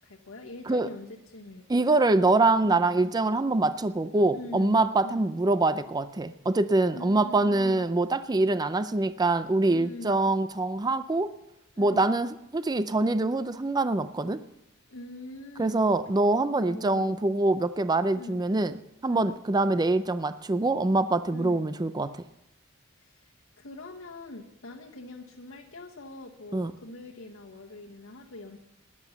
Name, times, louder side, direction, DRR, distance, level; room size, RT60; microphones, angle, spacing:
voice 1, 0.0-1.9 2.6-3.0 4.3-5.3 6.9-7.8 9.7-10.3 11.7-12.1 14.9-15.9 16.6-17.2 18.1-18.5 19.1-19.4 21.3-21.7 23.0-23.3 23.6-28.6, left 2 dB, 80° left, -1 dB, 1.2 m, -43 dB
voice 2, 1.7-11.3 11.8-14.4 15.6-18.8 19.0-22.2 26.5-26.7, right 2 dB, 20° right, 12 dB, 0.4 m, -24 dB
14.0 x 10.5 x 7.0 m, 0.90 s
head